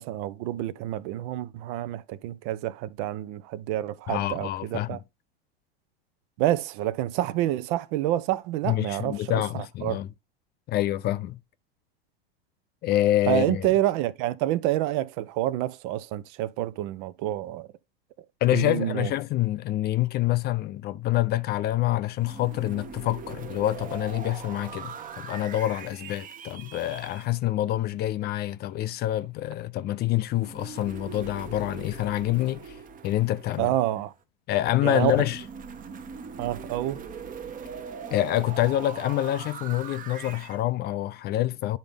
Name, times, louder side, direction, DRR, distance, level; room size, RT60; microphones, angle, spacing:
voice 1, 0.0-5.0 6.4-10.0 13.3-17.7 18.5-19.1 33.6-34.1 34.8-35.1 36.4-37.0, right 14 dB, 55° right, 0.7 m, -28 dB
voice 2, 4.1-5.0 8.7-10.1 10.7-11.4 12.8-13.7 18.4-32.8 33.0-33.7 34.5-35.4 38.1-41.8, left 14 dB, 35° left, 0.4 m, -26 dB
sound 1, 22.2-27.3 30.4-34.1 34.8-40.6, right 6 dB, 25° right, 0.9 m, -41 dB
10.5 x 4.0 x 3.5 m
hypercardioid pair, 100°, 30 cm